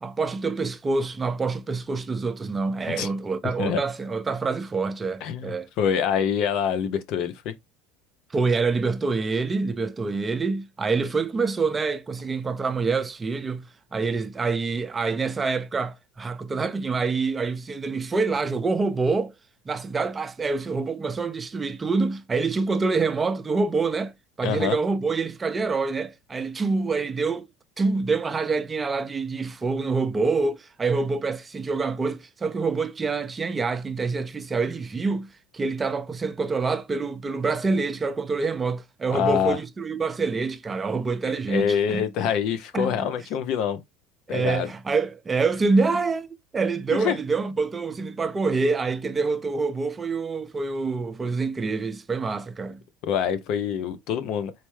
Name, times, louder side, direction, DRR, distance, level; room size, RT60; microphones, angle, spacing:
voice 1, 0.0-5.7 8.3-19.3 19.7-24.1 24.4-27.5 27.8-42.0 42.7-43.1 44.3-46.3 46.5-52.8, right 4 dB, 20° right, 0.5 m, -26 dB
voice 2, 5.2-7.5 24.4-24.8 39.1-39.6 41.5-43.8 44.3-44.7 46.9-47.2 53.1-54.5, left 8 dB, 60° left, 0.6 m, -25 dB
4.3 x 2.1 x 3.1 m
supercardioid pair, 100°, 0 cm